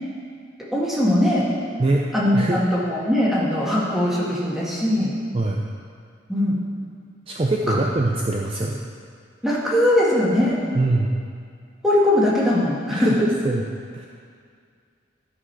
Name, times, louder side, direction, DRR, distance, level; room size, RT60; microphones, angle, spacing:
voice 1, 0.7-1.5 2.1-5.1 6.3-6.6 7.7-7.8 9.4-10.6 11.8-13.3, left 1 dB, ahead, -7 dB, 1.8 m, -20 dB
voice 2, 5.3-5.7 7.3-8.8 10.8-11.2 12.9-13.6 13.9-14.1, right 2 dB, 30° right, 0 dB, 0.5 m, -23 dB
12.5 x 6.2 x 4.7 m, 2.2 s
head